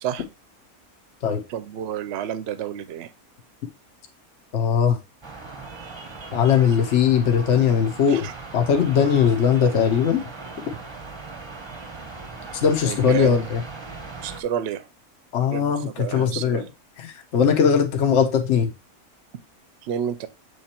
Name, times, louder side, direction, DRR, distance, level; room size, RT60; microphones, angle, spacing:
voice 1, 1.5-3.1 8.1-8.3 12.8-13.4 14.2-14.9 15.5-16.7 19.8-20.3, right 9 dB, 60° right, 0.7 m, -30 dB
voice 2, 4.5-5.0 6.3-8.3 8.5-10.2 12.5-13.6 15.3-16.6 17.0-18.7, left 7 dB, 55° left, 1.2 m, -20 dB
sound 1, 5.2-14.4, right 3 dB, 25° right, 0.7 m, -39 dB
7.7 x 3.2 x 4.3 m
omnidirectional pair, 1.5 m